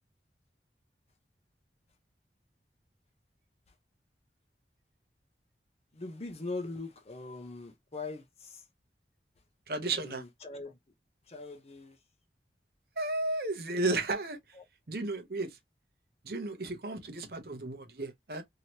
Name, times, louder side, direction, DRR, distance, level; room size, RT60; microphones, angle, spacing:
voice 1, 5.9-8.6 10.0-10.8 11.3-12.0 14.6-14.7, left 3 dB, 35° left, 0.7 m, -41 dB
voice 2, 9.7-10.2 13.0-14.4 14.9-15.6 16.2-18.4, right 2 dB, 55° right, 0.8 m, -33 dB
3.0 x 2.8 x 2.9 m
head